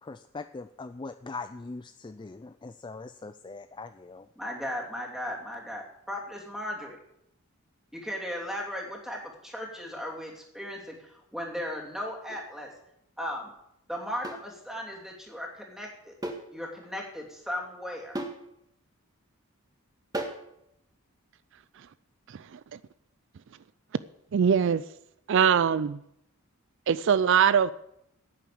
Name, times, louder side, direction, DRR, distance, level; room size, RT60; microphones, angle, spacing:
voice 1, 0.0-4.3, left 3 dB, 20° left, 0.4 m, -41 dB
voice 2, 4.4-7.0 7.9-12.7 13.2-13.5 13.9-16.1 16.5-18.2, equal, ahead, 2.9 m, -36 dB
sound 1, 12.3-12.5 14.2-14.5 16.2-16.5 16.8-16.9 18.1-18.4 20.1-20.5, right 1 dB, 15° right, 1.7 m, -35 dB
voice 3, 22.3-22.8 24.3-24.8 25.3-26.0 26.9-27.7, right 7 dB, 60° right, 0.4 m, -23 dB
11.0 x 9.2 x 8.6 m
head